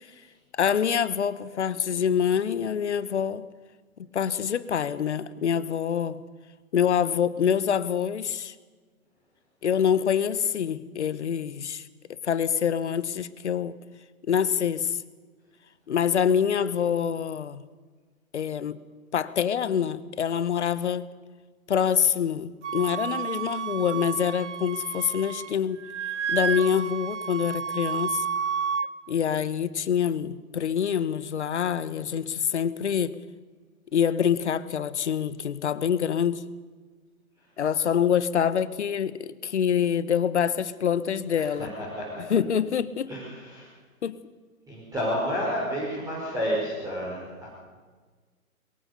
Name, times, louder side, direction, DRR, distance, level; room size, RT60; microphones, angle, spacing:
voice 1, 0.6-3.4 4.1-6.2 6.7-8.5 9.6-11.9 12.2-13.7 14.3-15.0 15.9-17.6 18.3-18.8 19.1-21.1 21.7-25.8 26.3-28.3 29.1-33.2 33.9-36.4 37.6-41.7 42.3-43.1 44.0-44.2, left 8 dB, 50° left, 1.2 m, -26 dB
Wind instrument woodwind instrument, 22.6-25.5 25.8-28.9, right 7 dB, 55° right, 0.9 m, -31 dB
voice 2, 41.4-41.7 42.0-42.2 43.1-43.7 44.7-47.5, equal, 10° right, 5.4 m, -30 dB
22.5 x 21.0 x 6.8 m
figure-of-eight pair, 125°, 43 cm